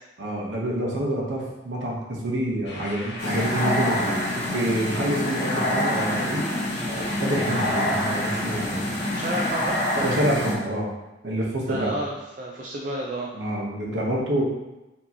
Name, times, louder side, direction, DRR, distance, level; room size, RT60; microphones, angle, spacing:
voice 1, 0.2-8.9 10.0-10.9 11.2-12.0 13.3-14.4, right 1 dB, 90° right, -2 dB, 0.9 m, -27 dB
sound 1, 2.6-10.1, left 1 dB, 80° left, 0.7 m, -38 dB
sound 2, 3.2-10.5, left 1 dB, 40° left, 1.1 m, -26 dB
voice 2, 9.1-9.8 11.7-13.3, right 1 dB, 45° right, -1 dB, 0.4 m, -30 dB
4.3 x 2.8 x 2.8 m, 1.0 s
head